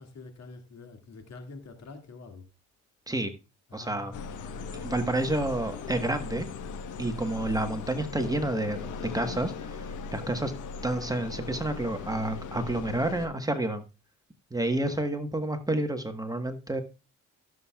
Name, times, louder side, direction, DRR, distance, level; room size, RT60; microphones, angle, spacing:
voice 1, 0.0-2.5 3.7-4.4 14.8-15.0, left 3 dB, 60° left, 2.2 m, -46 dB
voice 2, 3.7-4.1 4.7-6.5 7.0-10.5 10.8-13.8 14.5-16.8, right 1 dB, 10° right, 1.2 m, -29 dB
sound 1, 4.1-13.3, left 5 dB, 80° left, 1.2 m, -38 dB
16.0 x 7.4 x 2.3 m
cardioid pair, 90°, 30 cm